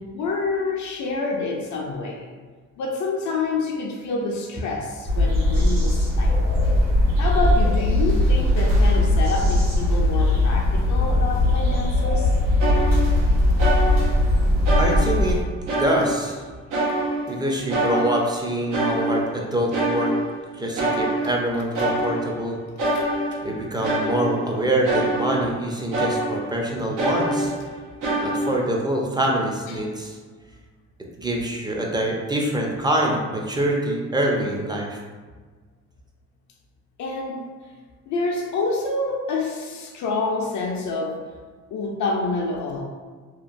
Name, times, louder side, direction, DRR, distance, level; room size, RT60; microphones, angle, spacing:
voice 1, 0.0-2.3 2.8-6.4 7.2-12.4 22.9-23.0 29.7-29.8 37.0-37.5 38.1-41.2 41.7-42.8, left 3 dB, 75° left, 0 dB, 0.5 m, -27 dB
sound 1, 5.1-15.4, left 1 dB, 55° right, 1.5 m, -19 dB
sound 2, 12.6-13.3 13.6-14.3 14.6-16.4 16.7-17.4 17.7-20.5 20.8-22.5 22.8-25.6 25.9-26.6 27.0-28.6, right 1 dB, 90° right, 0.7 m, -26 dB
voice 2, 14.8-15.4 15.8-16.4 17.3-20.1 20.5-22.6 23.4-27.5 28.2-30.2 31.2-35.0, right 1 dB, 15° right, -1 dB, 0.4 m, -25 dB
2.9 x 2.2 x 2.5 m, 1.4 s
cardioid pair, 90°, 30 cm